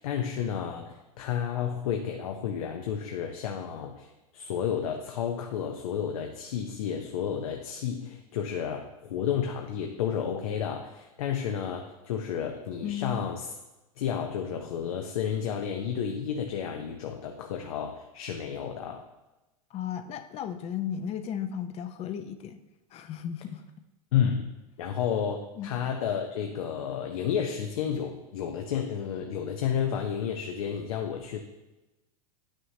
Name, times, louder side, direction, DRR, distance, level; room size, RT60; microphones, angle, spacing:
voice 1, 0.0-13.5 14.0-19.0 24.1-24.5 24.8-31.4, left 8 dB, 70° left, 4 dB, 0.7 m, -31 dB
voice 2, 12.8-13.3 19.7-22.6 22.9-23.6 25.6-25.8, left 8 dB, 35° left, 9 dB, 0.6 m, -35 dB
9.6 x 6.2 x 2.7 m, 1.0 s
hypercardioid pair, 105°, 19 cm